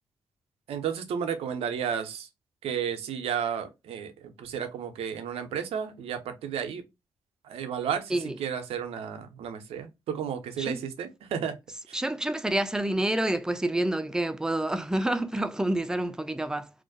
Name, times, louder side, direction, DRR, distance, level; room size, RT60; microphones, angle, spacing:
voice 1, 0.7-2.3 2.6-6.8 7.4-11.6 11.9-12.0, right 8 dB, 70° right, 0.5 m, -32 dB
voice 2, 11.9-16.7, right 1 dB, 5° right, 0.4 m, -28 dB
2.4 x 2.1 x 2.5 m
hypercardioid pair, 45°, 11 cm